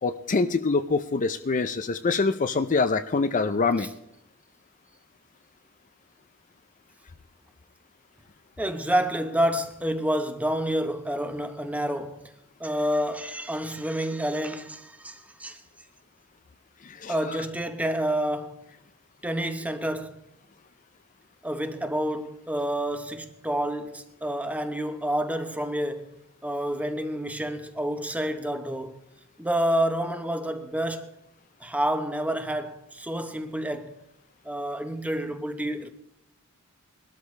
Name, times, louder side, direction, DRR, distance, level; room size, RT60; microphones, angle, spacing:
voice 1, 0.0-3.9 17.0-17.1, left 4 dB, 35° left, 0.5 m, -25 dB
voice 2, 8.6-12.3 12.6-15.6 17.1-18.6 19.2-20.2 21.4-26.2 26.4-29.0 29.4-31.1 31.6-34.0 34.4-35.9, right 1 dB, 5° right, 0.9 m, -29 dB
21.0 x 13.0 x 3.2 m
head